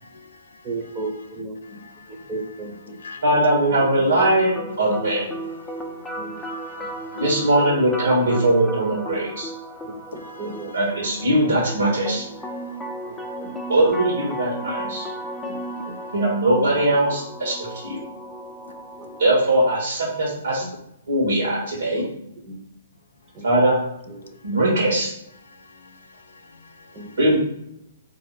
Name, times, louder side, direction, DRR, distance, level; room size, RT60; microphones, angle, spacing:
voice 1, 0.0-0.7 1.6-2.3 2.9-3.3 4.6-5.0 5.2-7.2 9.7-10.8 12.4-13.7 15.1-16.1 18.3-19.2 23.2-23.5 24.4-24.6 25.4-27.2, left 4 dB, 70° left, 0.5 m, -47 dB
voice 2, 0.6-1.8 2.1-3.0 3.3-4.1 4.6-5.3 6.2-6.4 6.8-6.9 7.1-7.4 9.8-10.7 11.4-11.5 13.1-13.5 14.8-16.0 16.5-16.7 19.0-19.1 20.6-20.7 22.0-22.6 23.3-23.6 24.1-24.7 26.9-27.4, right 2 dB, 25° right, 0.7 m, -37 dB
voice 3, 3.2-4.5 4.8-5.3 7.2-9.5 10.7-12.3 13.7-15.1 16.1-18.0 19.2-20.6 21.1-22.1 23.4-23.8 24.4-25.1 27.2-27.4, right 1 dB, 75° right, 1.2 m, -20 dB
sound 1, 3.8-19.8, right 1 dB, 5° left, 0.5 m, -35 dB
3.7 x 2.7 x 4.4 m
figure-of-eight pair, 120°, 0 cm